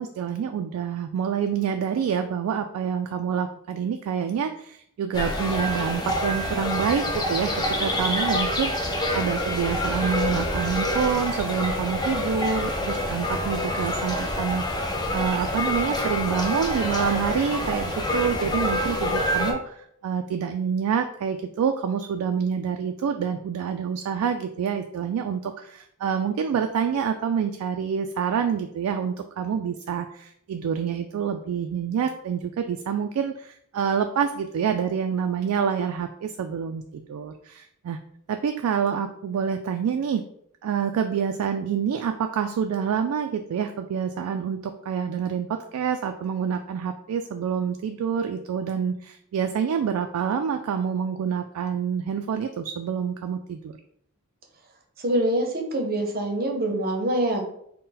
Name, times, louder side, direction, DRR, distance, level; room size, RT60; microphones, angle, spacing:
voice 1, 0.0-38.0 38.3-40.3 40.6-53.8, right 7 dB, 80° right, 7 dB, 0.3 m, -27 dB
sound 1, 5.1-19.5, left 1 dB, 20° left, 0.5 m, -27 dB
voice 2, 55.0-57.4, right 1 dB, 45° right, 3 dB, 0.7 m, -25 dB
4.0 x 2.1 x 3.8 m, 0.70 s
head